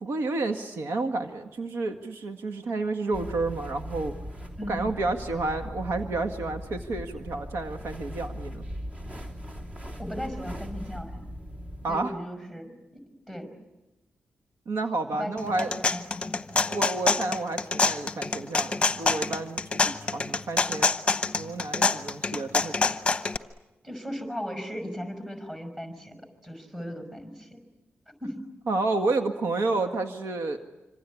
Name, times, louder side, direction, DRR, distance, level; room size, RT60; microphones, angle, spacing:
voice 1, 0.0-4.2 4.7-8.7 11.8-12.2 14.7-15.7 16.7-20.9 21.4-23.0 28.7-30.6, right 3 dB, 75° right, 5 dB, 1.8 m, -30 dB
sound 1, 3.1-12.0, equal, 35° right, 3.1 m, -39 dB
voice 2, 4.6-4.9 10.0-11.2 11.9-12.8 13.3-13.5 15.1-16.6 23.8-27.6 28.2-28.4, equal, 10° right, 7 dB, 5.5 m, -37 dB
sound 2, 15.4-23.4, left 4 dB, 25° left, 1.0 m, -26 dB
26.5 x 26.0 x 8.5 m, 1.0 s
wide cardioid pair, 155°, 4 cm